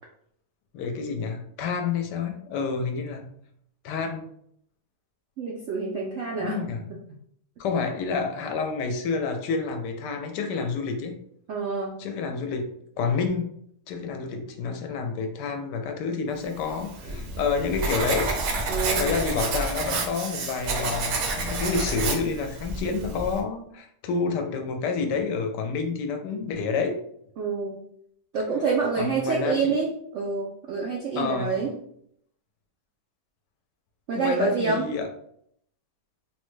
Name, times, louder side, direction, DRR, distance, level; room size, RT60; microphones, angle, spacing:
voice 1, 0.7-3.3 3.8-4.3 6.4-6.8 7.6-11.1 12.0-12.7 13.0-13.5 13.9-18.3 19.0-26.9 29.0-29.8 31.2-31.6 34.1-35.1, left 5 dB, 80° left, 5 dB, 1.2 m, -28 dB
voice 2, 5.4-6.6 11.5-12.0 18.7-19.1 27.4-27.8 28.3-31.7 34.1-34.9, right 5 dB, 85° right, -2 dB, 0.6 m, -27 dB
Writing, 16.7-23.4, right 3 dB, 70° right, 1.0 m, -29 dB
3.6 x 2.1 x 3.1 m, 0.70 s
omnidirectional pair, 1.8 m